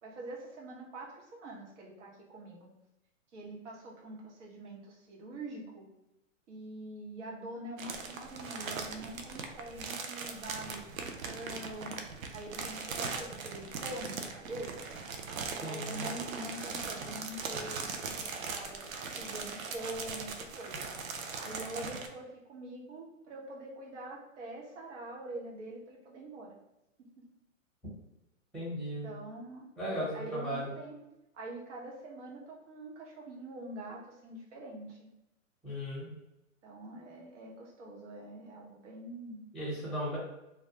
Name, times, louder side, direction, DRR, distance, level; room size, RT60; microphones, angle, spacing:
voice 1, 0.0-2.7 3.3-5.9 6.5-12.0 12.3-15.0 15.6-18.8 19.1-20.9 21.3-26.6 27.0-27.3 29.0-31.0 31.3-35.1 36.6-39.4, right 1 dB, 60° right, -3 dB, 1.0 m, -44 dB
sound 1, 7.8-22.1, right 4 dB, 85° right, 0.5 m, -40 dB
voice 2, 15.6-16.0 28.5-29.1 29.8-30.7 35.6-36.1 39.5-40.2, equal, ahead, -7 dB, 0.8 m, -36 dB
2.2 x 2.2 x 2.8 m, 0.90 s
hypercardioid pair, 125°, 40 cm